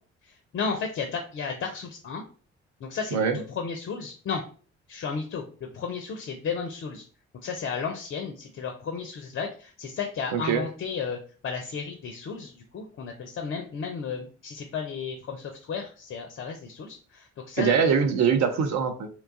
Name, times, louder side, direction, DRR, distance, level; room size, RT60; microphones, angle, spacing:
voice 1, 0.2-2.2 2.8-4.4 4.9-7.0 7.4-11.2 11.4-17.9, left 5 dB, 35° left, 4 dB, 0.5 m, -33 dB
voice 2, 10.3-10.6 17.6-19.1, right 6 dB, 50° right, 6 dB, 0.6 m, -23 dB
2.8 x 2.2 x 2.6 m, 0.40 s
figure-of-eight pair, 40°, 35 cm